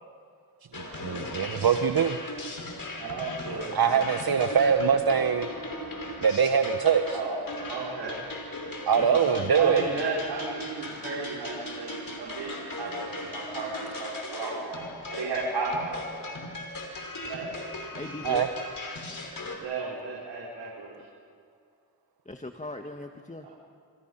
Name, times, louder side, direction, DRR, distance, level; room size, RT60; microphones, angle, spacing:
sound 1, 0.7-19.6, left 1 dB, 50° left, 6.0 m, -38 dB
voice 1, 0.7-2.2 3.7-5.5 6.2-7.2 8.9-9.8 18.2-18.5, right 7 dB, 60° right, 7 dB, 1.4 m, -23 dB
voice 2, 3.0-3.7 4.5-4.7 7.1-8.2 9.6-14.8 15.1-16.2 17.2-17.6 19.6-20.9 23.4-23.5, right 3 dB, 85° right, -6 dB, 5.8 m, -34 dB
voice 3, 9.0-9.9 17.9-18.5 22.3-23.5, left 2 dB, 15° left, 4 dB, 1.8 m, -38 dB
29.5 x 27.0 x 5.9 m, 2.2 s
cardioid pair, 50°, 42 cm